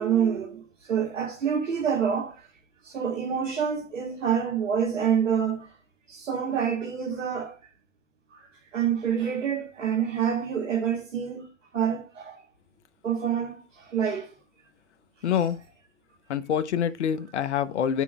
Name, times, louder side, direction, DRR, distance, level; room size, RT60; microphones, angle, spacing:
voice 1, 0.0-2.5 2.8-5.7 6.1-7.6 8.3-11.5 11.7-12.4 13.0-14.3 15.3-15.5, right 8 dB, 75° right, 1.6 m, -27 dB
voice 2, 15.2-15.6 16.3-18.0, left 8 dB, 60° left, 0.9 m, -26 dB
9.5 x 6.0 x 2.3 m
hypercardioid pair, 140°, 38 cm